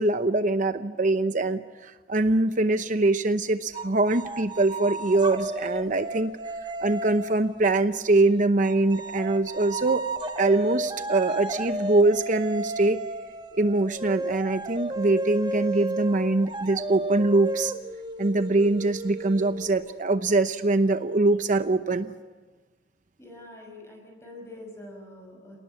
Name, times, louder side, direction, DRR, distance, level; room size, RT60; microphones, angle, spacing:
voice 1, 0.0-6.3 6.8-10.1 10.4-13.0 13.6-17.7 18.2-22.1, right 2 dB, 45° right, 10 dB, 0.8 m, -23 dB
sound 1, 3.7-7.7 8.6-19.9, right 2 dB, 25° right, 1.3 m, -33 dB
voice 2, 23.2-25.6, left 1 dB, 15° left, 1 dB, 5.6 m, -45 dB
28.0 x 19.0 x 8.6 m, 1.3 s
head